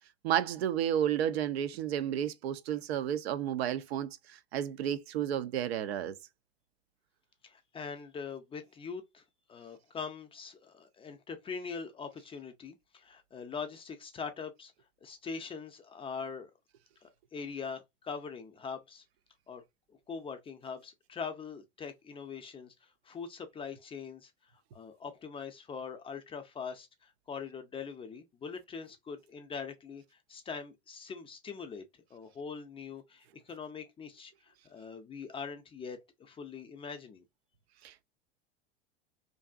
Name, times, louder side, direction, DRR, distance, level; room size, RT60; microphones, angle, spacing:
voice 1, 0.2-4.1 4.5-6.1 37.8-38.0, right 10 dB, 75° right, 0.5 m, -31 dB
voice 2, 7.4-9.2 9.5-14.7 15.0-16.5 17.0-19.0 19.5-19.6 19.9-31.8 32.1-37.2, left 5 dB, 15° left, 0.4 m, -42 dB
2.6 x 2.4 x 2.3 m
hypercardioid pair, 90°, 32 cm